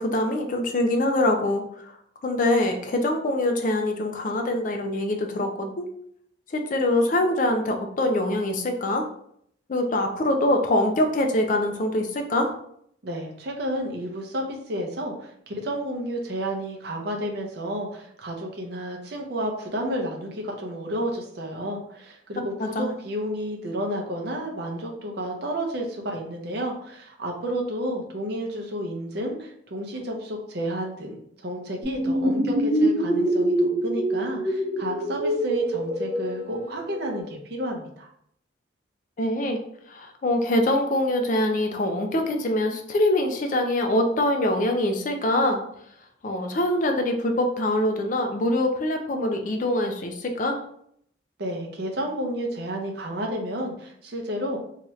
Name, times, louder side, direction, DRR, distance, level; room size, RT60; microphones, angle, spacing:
voice 1, 0.0-1.9 2.2-5.9 6.5-9.1 9.7-12.5 22.6-22.9 39.2-39.6 39.9-45.6 46.2-50.6, left 1 dB, 40° left, 4 dB, 0.4 m, -24 dB
voice 2, 13.0-38.1 51.4-54.6, right 1 dB, 55° right, 1 dB, 0.6 m, -31 dB
sound 1, 31.8-37.2, right 1 dB, 20° right, 1.0 m, -25 dB
2.8 x 2.4 x 3.0 m, 0.68 s
head